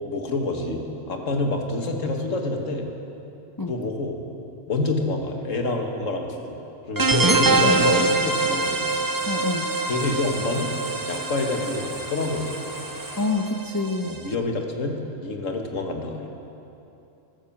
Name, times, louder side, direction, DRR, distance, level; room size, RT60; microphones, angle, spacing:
voice 1, 0.0-2.9 3.7-4.2 4.7-6.6 6.9-8.9 9.9-10.7 11.1-12.6 14.0-16.3, left 2 dB, 90° left, 3 dB, 1.9 m, -27 dB
sound 1, 7.0-14.3, right 3 dB, 25° right, 0.4 m, -24 dB
sound 2, 7.4-13.3, right 1 dB, 50° right, 3.4 m, -38 dB
voice 2, 9.3-9.7 13.2-14.2, left 3 dB, 20° left, 3 dB, 0.7 m, -27 dB
15.0 x 12.5 x 7.3 m, 2.9 s
omnidirectional pair, 1.3 m